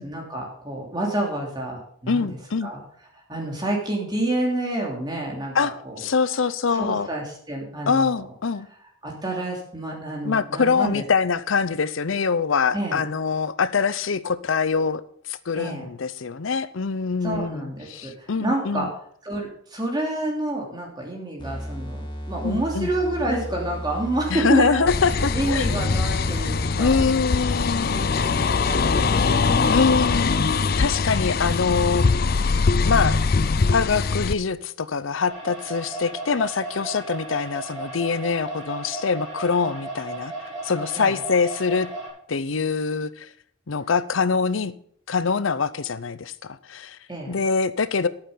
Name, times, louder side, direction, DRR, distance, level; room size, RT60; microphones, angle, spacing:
voice 1, 0.0-2.8 3.1-6.0 6.7-8.3 9.0-11.0 12.7-13.0 15.5-15.8 17.2-18.9 19.2-27.0 27.4-29.8 31.1-31.3 40.9-41.2 47.1-47.4, right 1 dB, 20° right, 3.1 m, -29 dB
voice 2, 2.1-2.7 5.5-7.1 7.9-8.7 10.2-15.0 15.3-18.9 22.4-22.9 24.3-25.8 26.8-28.1 29.6-30.4 30.8-32.1 32.9-33.2 33.7-40.3 40.6-41.9 42.3-43.3 43.7-44.7 45.1-47.0 47.3-48.1, left 5 dB, 85° left, 0.7 m, -24 dB
sound 1, 21.4-27.3, equal, 25° left, 2.4 m, -34 dB
sound 2, 24.9-34.3, left 4 dB, 50° left, 0.5 m, -22 dB
sound 3, 35.3-42.1, right 2 dB, 40° right, 6.4 m, -35 dB
11.5 x 8.8 x 5.7 m
head